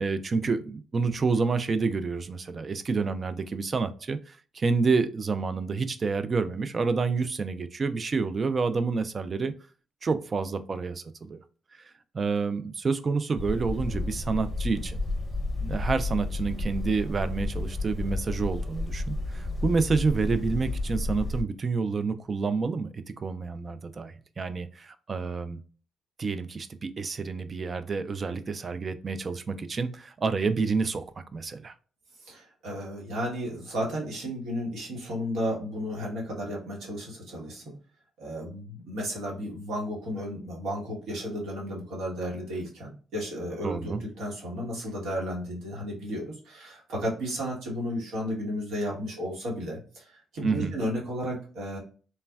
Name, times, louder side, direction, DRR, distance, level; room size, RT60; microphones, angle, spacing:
voice 1, 0.0-9.5 10.0-11.4 12.1-15.0 15.6-25.6 26.2-31.1 31.3-31.7 43.6-44.0 50.4-50.7, right 4 dB, 40° right, 11 dB, 0.3 m, -28 dB
sound 1, 13.4-21.4, left 2 dB, 20° left, 0.6 m, -31 dB
voice 2, 32.2-37.7 38.2-51.8, equal, 80° right, -2 dB, 1.2 m, -33 dB
3.2 x 2.1 x 2.3 m, 0.40 s
cardioid pair, 90°, 0 cm